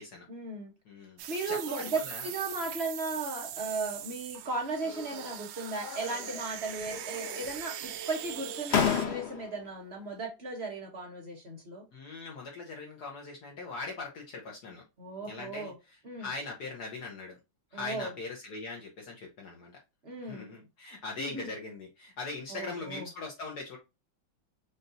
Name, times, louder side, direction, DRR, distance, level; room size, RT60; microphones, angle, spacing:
voice 1, 0.3-0.7 1.3-11.8 15.0-15.7 16.0-16.3 17.7-18.1 20.0-20.5 21.2-21.5 22.5-23.1, right 3 dB, 40° right, 1.1 m, -36 dB
voice 2, 0.8-2.3 11.9-14.8 15.3-17.4 17.7-19.7 20.2-23.8, left 3 dB, 60° left, 1.3 m, -41 dB
sound 1, 1.2-9.1, right 10 dB, 80° right, 1.3 m, -41 dB
sound 2, 4.8-5.4 5.8-6.6 6.9-7.6 8.3-8.4 8.7-9.6, left 7 dB, 80° left, 0.5 m, -32 dB
5.4 x 2.7 x 2.6 m
omnidirectional pair, 2.1 m